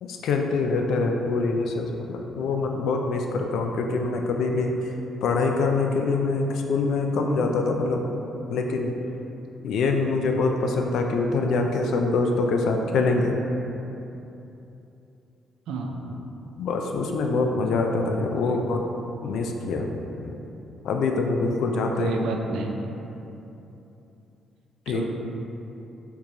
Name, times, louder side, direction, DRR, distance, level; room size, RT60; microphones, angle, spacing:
voice 1, 0.0-4.9 5.2-8.0 8.5-8.9 9.6-13.4 16.6-18.8 19.2-20.4 20.8-22.1 24.9-25.0, left 3 dB, 75° left, 3 dB, 0.3 m, -24 dB
voice 2, 15.7-16.2 18.3-18.6 22.0-22.8 24.9-25.1, right 3 dB, 85° right, 2 dB, 0.3 m, -30 dB
4.5 x 2.6 x 2.8 m, 2.9 s
cardioid pair, 90°, 0 cm